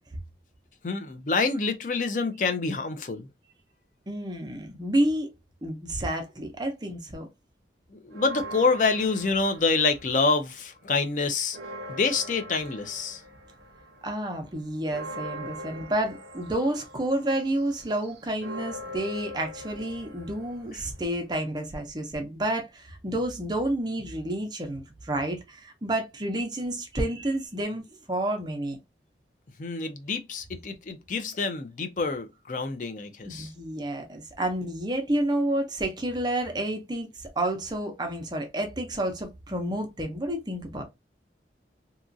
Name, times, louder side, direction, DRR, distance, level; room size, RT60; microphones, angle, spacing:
voice 1, 0.8-3.3 7.9-11.6 11.9-13.2 29.6-33.5, left 4 dB, 45° left, 0.4 m, -27 dB
voice 2, 4.1-5.3 5.6-7.3 14.0-28.8 33.3-40.8, right 1 dB, 25° right, 0.5 m, -30 dB
sound 1, 8.1-10.5 10.8-21.3, equal, 70° right, 0.6 m, -42 dB
2.8 x 2.4 x 2.6 m
head